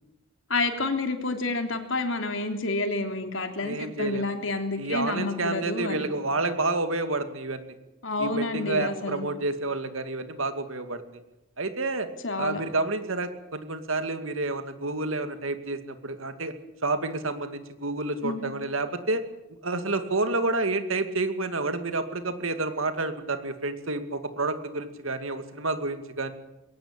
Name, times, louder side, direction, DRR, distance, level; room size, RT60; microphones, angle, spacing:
voice 1, 0.5-6.1 8.0-9.3 12.2-12.6 18.2-18.5, left 2 dB, 75° left, 6 dB, 3.2 m, -29 dB
voice 2, 3.6-4.3 4.8-7.7 8.2-11.0 11.6-12.1 12.4-16.5 16.8-19.2 19.6-26.3, right 2 dB, 90° right, 8 dB, 2.4 m, -29 dB
22.0 x 18.0 x 8.9 m, 0.96 s
head